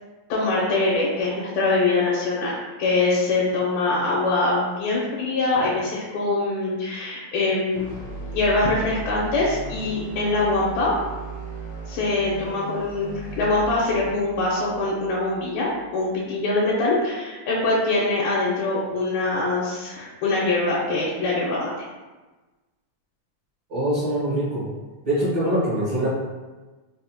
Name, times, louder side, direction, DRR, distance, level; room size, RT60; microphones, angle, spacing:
voice 1, 0.3-7.8 8.3-10.9 11.9-21.7, left 2 dB, 85° left, -5 dB, 2.1 m, -23 dB
sound 1, 7.7-15.9, right 2 dB, 65° left, 1.0 m, -37 dB
voice 2, 23.7-24.7 25.0-26.1, right 1 dB, 60° right, -11 dB, 1.0 m, -23 dB
5.1 x 2.1 x 2.8 m, 1.2 s
omnidirectional pair, 3.3 m